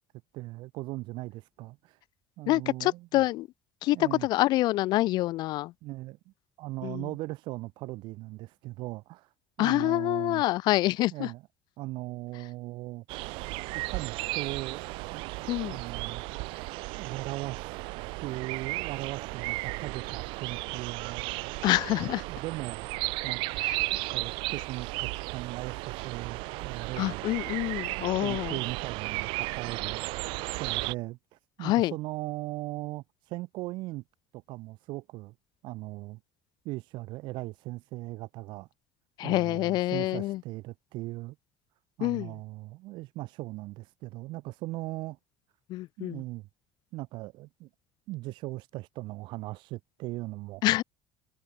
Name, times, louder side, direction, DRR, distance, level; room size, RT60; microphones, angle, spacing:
voice 1, 0.3-2.0 2.4-3.1 3.9-4.3 5.8-6.2 6.6-9.3 9.6-10.4 11.1-11.4 11.8-13.0 13.7-14.8 15.1-15.2 15.6-16.2 17.0-17.9 18.2-21.3 22.3-22.9 23.2-27.2 28.2-30.1 30.5-34.0 34.3-35.3 35.6-36.2 36.6-38.7 39.2-41.4 42.0-45.2 46.0-46.5 46.9-47.7 48.1-50.6, right 19 dB, 70° right, 3.0 m, -38 dB
voice 2, 2.5-3.5 3.8-5.7 6.8-7.1 9.6-11.3 15.5-15.8 21.6-22.2 23.6-23.8 27.0-28.6 31.6-31.9 39.2-40.4 42.0-42.3 45.7-46.2 50.6-50.8, left 17 dB, 55° left, 0.7 m, -27 dB
sound 1, 13.1-30.9, right 25 dB, 85° right, 2.2 m, -35 dB
cardioid pair, 170°, 9 cm